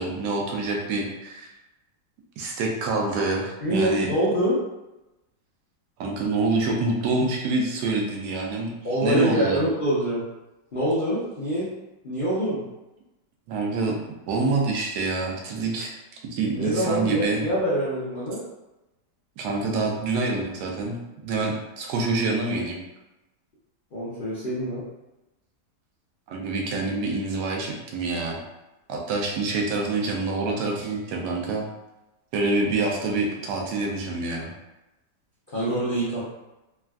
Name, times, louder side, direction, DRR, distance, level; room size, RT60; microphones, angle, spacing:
voice 1, 0.0-1.5 2.4-4.1 6.0-8.7 9.0-9.6 13.5-14.0 14.3-16.0 16.3-17.5 19.4-21.0 21.2-22.8 26.3-28.4 28.9-31.7 32.3-34.5, right 3 dB, 75° right, 0 dB, 1.1 m, -26 dB
voice 2, 3.6-4.6 8.8-10.2 10.7-11.7 12.0-12.6 16.5-18.4 23.9-24.8 35.5-36.2, right 1 dB, 55° left, -11 dB, 0.5 m, -25 dB
3.4 x 2.3 x 2.2 m, 0.98 s
omnidirectional pair, 1.8 m